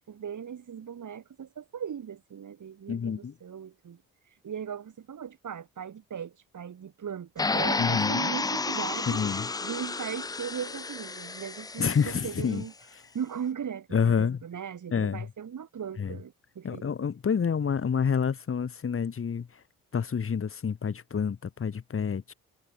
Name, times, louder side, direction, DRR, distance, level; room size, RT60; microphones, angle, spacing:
voice 1, 0.1-4.0 4.4-9.2 9.6-12.7 13.1-16.8, right 8 dB, 45° right, 5.9 m, -38 dB
voice 2, 2.9-3.3 7.8-8.2 9.1-9.5 11.8-12.6 13.9-14.4 14.9-15.3 16.0-16.2 16.6-19.6 19.9-22.3, left 6 dB, 30° left, 1.7 m, -28 dB
sound 1, 7.4-12.4, left 3 dB, 10° left, 0.4 m, -31 dB
figure-of-eight pair, 40°, 40 cm